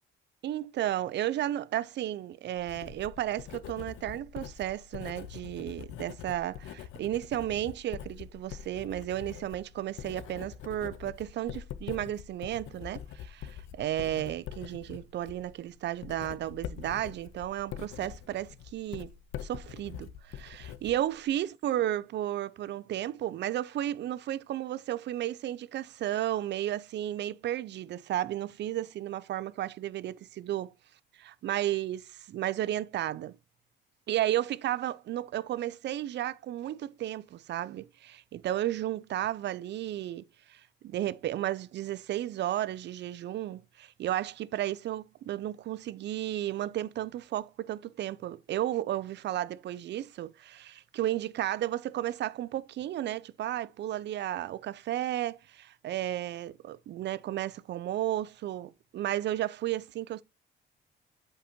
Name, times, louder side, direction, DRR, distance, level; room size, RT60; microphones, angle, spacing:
voice 1, 0.4-19.1 19.4-30.7 31.2-33.3 34.1-40.2 40.5-60.2, right 12 dB, 60° right, 0.5 m, -33 dB
Writing, 2.5-21.4, left 10 dB, 80° left, 0.6 m, -44 dB
8.4 x 5.1 x 2.9 m
cardioid pair, 90°, 20 cm